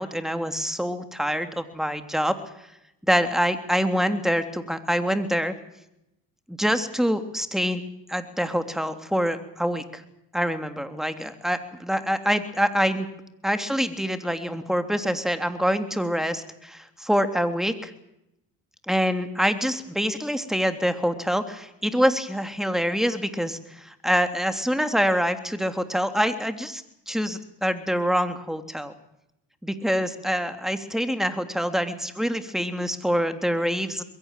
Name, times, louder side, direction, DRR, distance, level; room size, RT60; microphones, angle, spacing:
voice 1, 0.0-2.4 3.1-5.5 6.5-7.8 8.1-10.0 10.3-13.1 13.4-17.9 18.9-28.9 29.6-34.0, equal, ahead, 8 dB, 3.2 m, -25 dB
22.0 x 16.5 x 9.3 m, 0.81 s
supercardioid pair, 65°, 38 cm